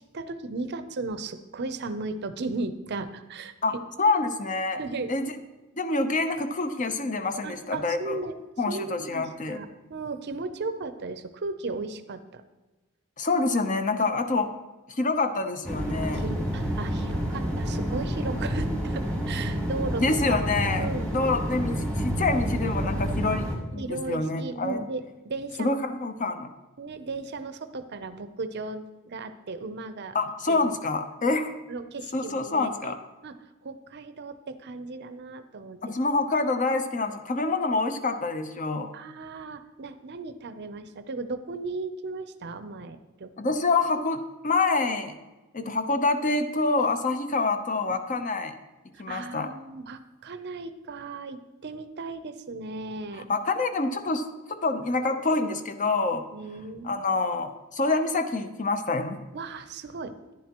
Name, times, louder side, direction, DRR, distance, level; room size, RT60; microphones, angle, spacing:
voice 1, 0.0-3.5 4.8-5.1 7.4-8.3 8.7-12.4 14.1-14.2 16.0-20.0 20.3-20.4 20.8-21.1 23.8-25.8 26.8-30.2 30.5-30.6 31.7-32.9 33.2-33.4 33.6-35.8 38.9-43.6 47.8-48.3 48.9-53.3 54.8-55.1 56.3-57.0 59.3-60.3, right 3 dB, 50° right, 10 dB, 0.6 m, -36 dB
voice 2, 3.6-4.8 5.1-5.3 5.8-8.2 8.6-9.6 13.2-14.5 14.9-16.2 20.0-24.8 25.6-26.5 30.1-31.6 32.1-33.0 35.8-38.9 43.4-45.2 45.5-48.5 49.0-49.5 53.3-56.2 56.8-59.2, left 3 dB, 35° left, 8 dB, 0.7 m, -27 dB
sound 1, 15.6-23.6, equal, 5° left, 1.4 m, -29 dB
10.5 x 10.5 x 3.0 m, 1.1 s
head